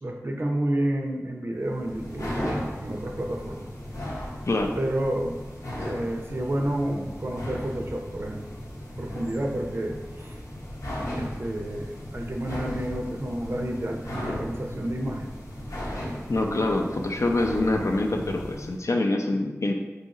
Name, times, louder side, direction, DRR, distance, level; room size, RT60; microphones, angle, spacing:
voice 1, 0.0-3.7 4.8-5.4 5.8-8.4 9.0-10.4 11.2-15.4 18.2-18.3, right 1 dB, 50° right, 2 dB, 0.4 m, -30 dB
sound 1, 1.6-18.8, left 1 dB, 85° left, 0.9 m, -36 dB
voice 2, 16.3-19.7, left 2 dB, 70° left, 3 dB, 0.4 m, -25 dB
2.7 x 2.4 x 4.1 m, 1.1 s
wide cardioid pair, 50°, 5 cm